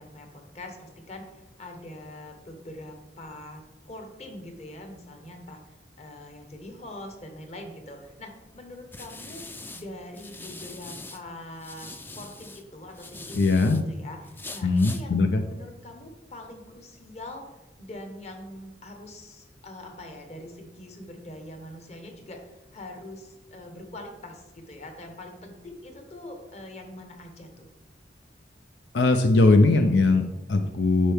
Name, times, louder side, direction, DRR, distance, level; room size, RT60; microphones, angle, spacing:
voice 1, 0.0-15.2 15.5-27.7, left 1 dB, 40° left, 3 dB, 1.2 m, -43 dB
sound 1, 8.0-11.2 11.6-13.8 14.2-15.0, left 2 dB, 10° left, 0.4 m, -42 dB
voice 2, 13.3-13.8 14.6-15.4 28.9-31.1, left 3 dB, 80° left, 6 dB, 0.5 m, -20 dB
11.0 x 4.4 x 3.5 m, 1.0 s
head